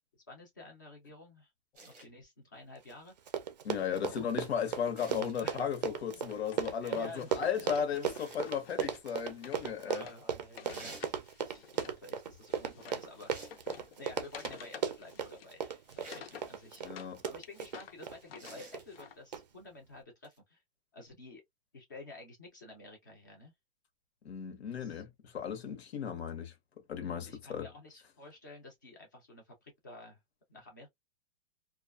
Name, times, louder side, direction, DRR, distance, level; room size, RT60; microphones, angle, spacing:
voice 1, 0.3-1.5 1.8-3.3 3.9-4.3 5.4-5.6 6.8-7.7 9.9-13.6 14.0-16.9 17.2-20.6 20.9-21.4 21.7-23.5 24.7-25.0 27.1-30.2 30.5-30.9, left 2 dB, 20° left, 0.4 m, -51 dB
sound 1, 1.7-2.1 4.9-5.4 8.0-8.4 10.6-11.1 13.3-13.6 14.4-14.8 16.0-16.3 18.4-18.8 20.2-20.4, right 2 dB, 15° right, 0.7 m, -50 dB
Run, 2.9-3.0 3.2-18.2 18.7-19.0 19.3-19.4, right 7 dB, 45° right, 0.4 m, -36 dB
voice 2, 3.6-10.1 16.8-17.2 24.2-26.5 26.9-27.7, left 7 dB, 85° left, 0.9 m, -35 dB
Wood, 6.0-12.0 12.3-17.1 17.4-19.2, left 8 dB, 70° left, 0.6 m, -52 dB
2.4 x 2.3 x 2.3 m
hypercardioid pair, 180°, 31 cm